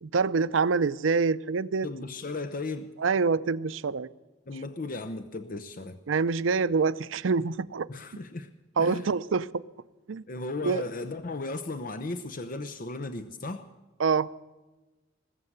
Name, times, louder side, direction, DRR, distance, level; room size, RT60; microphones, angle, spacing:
voice 1, 0.0-1.9 3.0-4.1 6.1-7.9 8.8-9.6 10.1-10.2 10.6-10.8 14.0-14.3, right 4 dB, 90° right, 0.5 m, -26 dB
voice 2, 1.8-2.9 4.5-6.0 7.9-8.5 8.8-9.1 10.3-13.7, left 2 dB, 45° left, 0.7 m, -35 dB
20.5 x 7.6 x 8.0 m
head